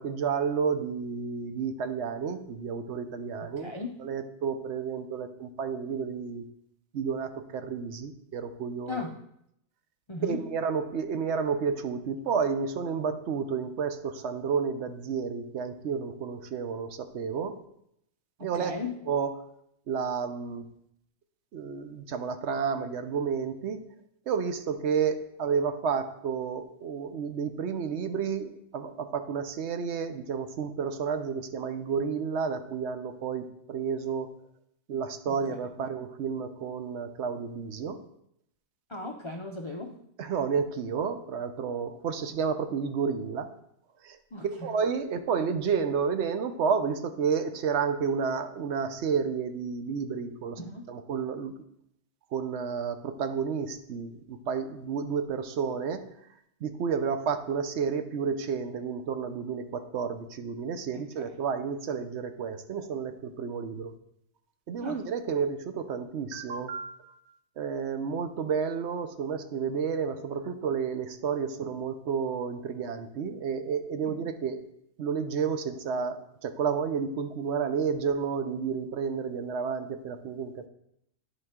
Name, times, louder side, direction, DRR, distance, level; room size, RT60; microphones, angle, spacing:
voice 1, 0.0-3.7 4.0-6.4 6.9-9.0 10.3-17.5 18.4-18.7 19.1-19.3 19.9-20.7 21.5-23.8 24.3-34.3 34.9-38.0 40.2-43.5 44.0-44.2 44.4-50.6 50.9-51.5 52.3-56.0 56.6-63.9 64.7-67.2 67.6-74.6 75.0-80.7, right 6 dB, 60° right, 9 dB, 0.9 m, -31 dB
voice 2, 3.4-4.0 8.9-9.2 10.1-10.4 18.4-19.0 35.3-35.6 38.9-40.0 44.3-44.7 50.6-50.9 60.9-61.4 64.8-65.0 74.0-74.2, left 2 dB, 45° left, 1 dB, 0.4 m, -37 dB
10.5 x 4.9 x 3.6 m, 0.75 s
omnidirectional pair, 1.4 m